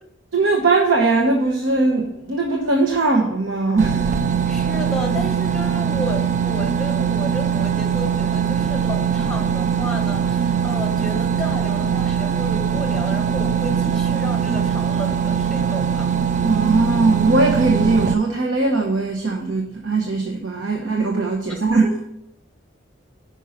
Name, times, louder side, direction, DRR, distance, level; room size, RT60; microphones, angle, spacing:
voice 1, 0.3-4.1 16.4-22.1, right 3 dB, 85° right, 0 dB, 1.0 m, -20 dB
sound 1, 3.8-18.1, right 7 dB, 40° right, 0.4 m, -21 dB
voice 2, 4.5-16.1 21.8-22.0, equal, ahead, 3 dB, 1.1 m, -32 dB
5.5 x 5.4 x 6.4 m, 0.80 s
head